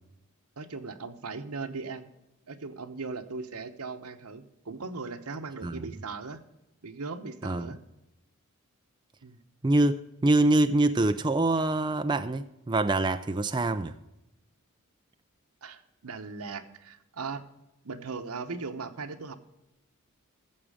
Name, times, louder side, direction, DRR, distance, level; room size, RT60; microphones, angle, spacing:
voice 1, 0.6-2.1 2.5-6.4 6.8-7.8 9.2-9.4 15.6-17.5 17.8-19.4, right 4 dB, 85° right, 1.0 m, -38 dB
voice 2, 9.6-13.9, right 2 dB, 20° right, 0.4 m, -25 dB
14.5 x 7.3 x 4.9 m
head